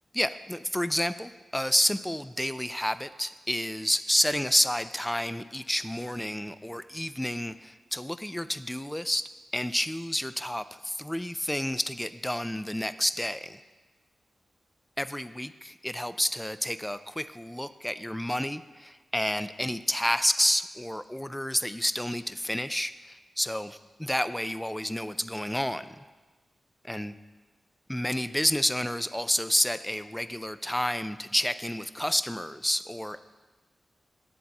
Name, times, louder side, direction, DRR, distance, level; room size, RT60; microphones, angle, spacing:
voice 1, 0.1-9.2 9.5-13.6 15.0-26.0 26.8-27.1 27.9-33.2, equal, 5° left, 13 dB, 0.3 m, -30 dB
10.0 x 4.0 x 7.1 m, 1.3 s
cardioid pair, 60°, 0 cm